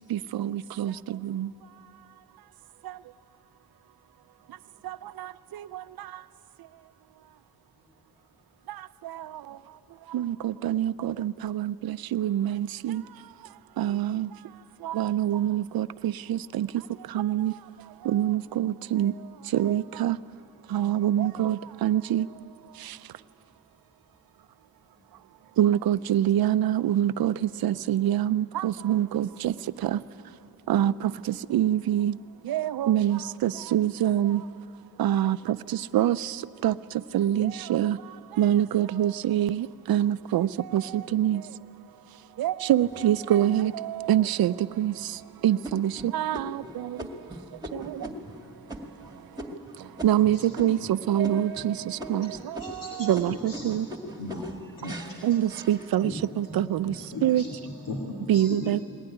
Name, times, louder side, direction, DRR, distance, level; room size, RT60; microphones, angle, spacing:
voice 1, 0.1-0.9 1.3-1.5 10.1-13.0 13.8-14.3 14.9-16.7 17.2-17.5 18.1-19.1 19.6-20.2 20.7-22.2 25.6-27.3 27.6-29.5 29.9-30.0 30.7-30.9 31.5-32.1 32.5-34.4 35.0-35.4 35.9-36.2 36.6-36.7 37.1-38.0 38.4-40.8 41.1-41.4 42.4-43.7 44.1-44.9 45.4-46.5 50.0-50.8 51.1-51.7 52.1-52.3 53.0-53.8 55.2-56.1 56.4-56.9 57.2-57.4 58.3-58.8, right 11 dB, 85° right, 0.6 m, -24 dB
voice 2, 4.4-4.9 7.7-8.3 9.0-9.4 24.1-24.3 24.6-25.5, left 1 dB, 40° left, 7.5 m, -70 dB
sound 1, 42.8-43.7 44.2-44.3 44.8-45.2 45.6-50.9 51.2-51.7 52.0-56.3 56.8-57.3, equal, 10° right, 2.0 m, -40 dB
voice 3, 52.6-53.6 54.2-54.5 54.8-55.0 56.0-56.6 56.8-58.8, left 2 dB, 65° left, 2.4 m, -38 dB
20.5 x 19.5 x 10.0 m
cardioid pair, 100°, 35 cm